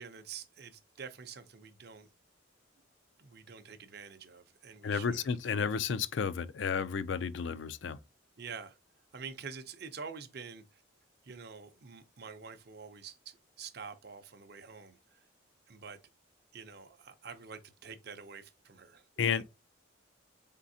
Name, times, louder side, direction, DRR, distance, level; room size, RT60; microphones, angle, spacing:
voice 1, 0.0-2.1 3.2-5.3 8.4-8.8 9.1-10.8 11.2-15.2 15.7-16.0 16.5-19.0 19.3-19.4, right 5 dB, 50° right, 0.6 m, -47 dB
voice 2, 4.8-8.0 19.2-19.4, left 6 dB, 65° left, 0.4 m, -32 dB
4.1 x 3.6 x 2.7 m
head